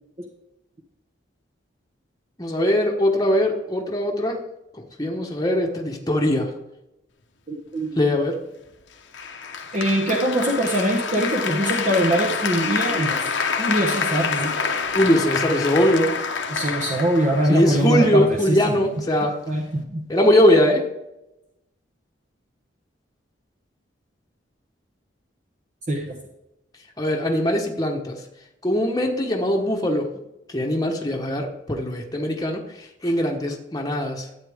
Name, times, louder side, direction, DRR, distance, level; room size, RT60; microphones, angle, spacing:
voice 1, 2.4-4.4 5.0-6.5 8.0-8.4 14.9-16.1 17.5-19.4 20.1-20.9 27.0-28.2 28.6-30.1 30.5-32.6 33.0-34.3, left 1 dB, 20° left, 0 dB, 1.1 m, -21 dB
voice 2, 7.5-7.9 9.7-13.2 13.6-14.6 16.5-18.8 19.5-20.0 25.9-26.2, right 1 dB, 40° right, 0 dB, 1.2 m, -22 dB
Applause, 9.1-18.2, left 5 dB, 75° left, 1.1 m, -27 dB
13.0 x 8.6 x 3.6 m, 0.90 s
head